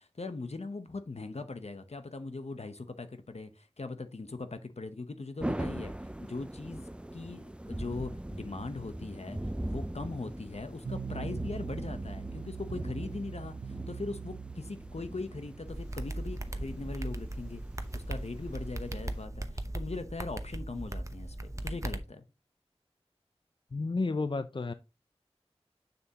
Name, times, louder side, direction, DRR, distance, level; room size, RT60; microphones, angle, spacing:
voice 1, 0.0-5.9 6.2-17.6 17.9-22.2, left 3 dB, 75° left, 0.8 m, -40 dB
sound 1, 5.4-19.2, right 1 dB, 10° right, 0.4 m, -41 dB
sound 2, 10.8-22.0, right 6 dB, 75° right, 0.4 m, -44 dB
sound 3, 15.7-22.0, right 1 dB, 30° right, 0.8 m, -38 dB
voice 2, 23.7-24.7, left 3 dB, 50° left, 0.4 m, -31 dB
7.0 x 6.7 x 2.9 m
wide cardioid pair, 45°, 11 cm